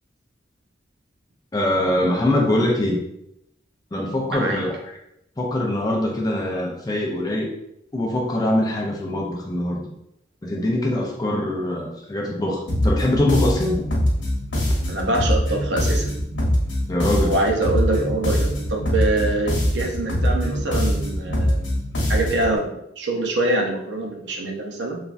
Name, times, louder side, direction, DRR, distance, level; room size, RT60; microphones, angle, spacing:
voice 1, 1.5-3.0 3.9-4.8 5.4-7.5 7.9-9.9 10.4-13.9 16.9-17.4, left 1 dB, 20° left, -1 dB, 0.4 m, -23 dB
voice 2, 4.3-4.6 14.9-16.1 17.1-21.7 22.1-25.0, right 2 dB, 65° right, 1 dB, 0.5 m, -24 dB
sound 1, 12.7-22.5, equal, 85° left, 1.0 m, -23 dB
3.2 x 2.3 x 2.4 m, 0.80 s
head